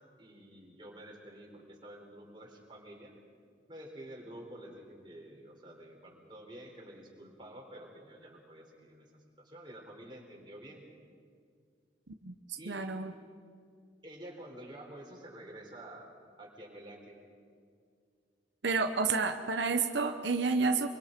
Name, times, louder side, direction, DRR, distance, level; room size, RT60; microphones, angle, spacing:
voice 1, 0.2-3.1 3.7-10.9 12.6-12.9 14.0-16.1 16.4-17.2, right 1 dB, 25° right, -1 dB, 3.9 m, -49 dB
voice 2, 12.1-13.1 18.6-20.9, right 4 dB, 85° right, 6 dB, 0.9 m, -30 dB
25.0 x 23.5 x 5.2 m, 2.2 s
head